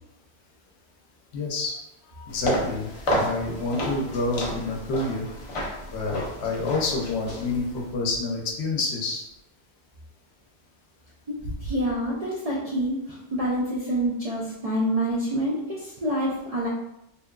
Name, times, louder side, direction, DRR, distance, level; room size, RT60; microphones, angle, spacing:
voice 1, 1.3-1.8 2.1-5.3 5.9-9.2 11.4-11.5, left 3 dB, 80° left, 0 dB, 0.9 m, -28 dB
sound 1, 2.3-7.9, equal, 50° left, 0.4 m, -31 dB
voice 2, 11.6-16.7, right 1 dB, 60° right, -5 dB, 0.3 m, -27 dB
2.7 x 2.2 x 2.2 m, 0.84 s
omnidirectional pair, 1.1 m